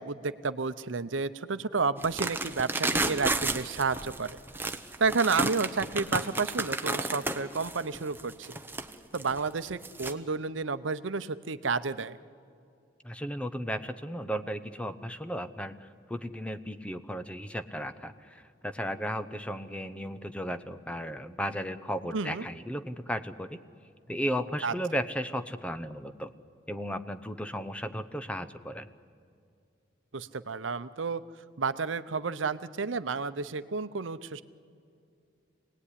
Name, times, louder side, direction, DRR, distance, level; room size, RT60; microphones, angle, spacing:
voice 1, 0.0-4.3 5.0-8.6 9.1-12.2 22.1-22.4 24.6-24.7 30.1-31.2 31.6-34.4, right 4 dB, 85° right, 13 dB, 0.8 m, -31 dB
sound 1, 2.0-10.1, right 2 dB, 10° right, 1.0 m, -32 dB
voice 2, 13.0-15.7 16.1-23.6 24.1-26.3 26.7-28.9, equal, 5° left, 10 dB, 0.8 m, -35 dB
26.0 x 19.0 x 9.9 m, 2.4 s
head